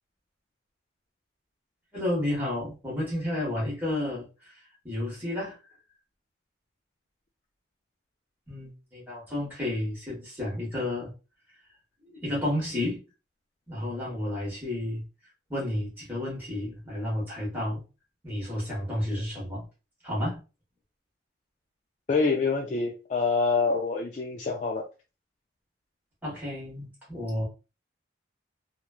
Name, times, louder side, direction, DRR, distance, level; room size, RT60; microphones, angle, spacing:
voice 1, 1.9-4.3 4.8-5.6 8.5-11.1 12.0-13.0 13.7-15.1 15.5-17.8 18.2-19.6 20.0-20.4 26.2-27.4, left 1 dB, 10° right, 1.2 m, -31 dB
voice 2, 22.1-24.8, left 4 dB, 35° left, 0.3 m, -26 dB
3.0 x 2.3 x 2.3 m
head